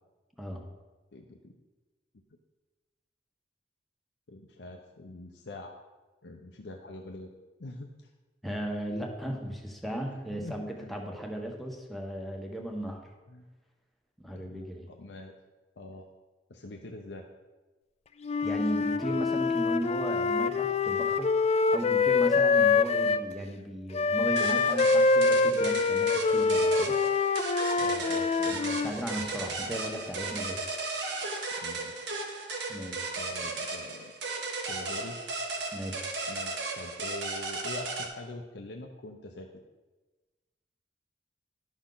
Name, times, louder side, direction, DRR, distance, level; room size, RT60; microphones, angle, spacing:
voice 1, 1.1-1.5 4.3-5.7 6.2-7.3 7.6-7.9 10.1-10.9 13.3-13.5 14.3-15.3 15.8-16.1 16.5-17.3 27.7-28.6 31.6-32.1 33.2-34.2 34.7-35.2 36.3-39.5, left 2 dB, 90° left, 2 dB, 0.7 m, -44 dB
voice 2, 8.4-13.0 14.2-14.9 18.4-27.0 28.1-28.2 28.5-30.6 32.7-33.1 35.7-36.1, right 1 dB, ahead, 1 dB, 1.2 m, -36 dB
Wind instrument woodwind instrument, 18.2-23.2 23.9-28.9, left 4 dB, 35° left, 0.4 m, -25 dB
sound 1, 24.4-38.1, right 3 dB, 80° right, 1.3 m, -35 dB
11.5 x 6.2 x 3.9 m, 1.2 s
head